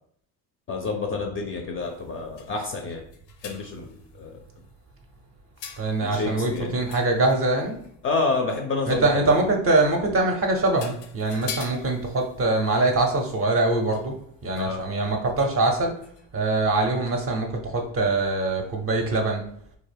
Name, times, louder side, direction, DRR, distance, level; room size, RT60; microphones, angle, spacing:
voice 1, 0.7-3.0 3.4-4.3 6.0-6.7 8.0-9.4 14.6-14.8, left 3 dB, 30° left, 3 dB, 0.4 m, -28 dB
sound 1, 1.8-4.7 5.6-8.0 8.8-9.2 10.3-10.4 10.7-15.0 15.4-15.6 16.0-16.3 17.0-17.1, left 7 dB, 80° left, 0.6 m, -44 dB
voice 2, 5.8-7.8 8.9-14.1 14.4-16.0 16.3-19.4, right 2 dB, 30° right, 2 dB, 0.6 m, -23 dB
2.3 x 2.0 x 3.3 m, 0.65 s
hypercardioid pair, 75°, 46 cm